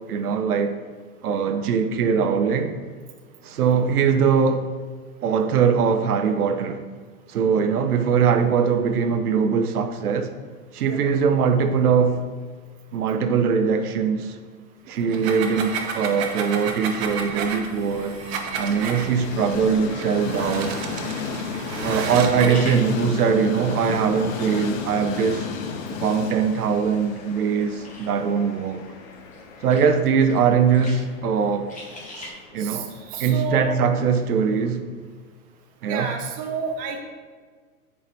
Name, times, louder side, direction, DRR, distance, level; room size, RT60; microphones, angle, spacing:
voice 1, 0.1-0.7 1.2-2.8 3.4-4.7 5.2-6.8 7.3-10.3 10.7-12.3 12.9-14.4 14.9-18.2 18.6-20.8 21.8-25.5 26.0-28.9 29.6-31.7 32.2-32.9 33.2-34.8 35.8-36.2, right 6 dB, 80° right, 0.8 m, -21 dB
sound 1, 15.0-19.1 19.9-22.7, right 5 dB, 45° right, 0.9 m, -32 dB
Train, 15.5-33.5, left 5 dB, 30° left, 0.6 m, -35 dB
sound 2, 17.9-32.3, left 2 dB, 15° left, 1.3 m, -47 dB
voice 2, 33.1-33.8 35.9-37.0, right 6 dB, 20° right, 0.6 m, -29 dB
7.7 x 4.7 x 3.4 m
hypercardioid pair, 130°, 45 cm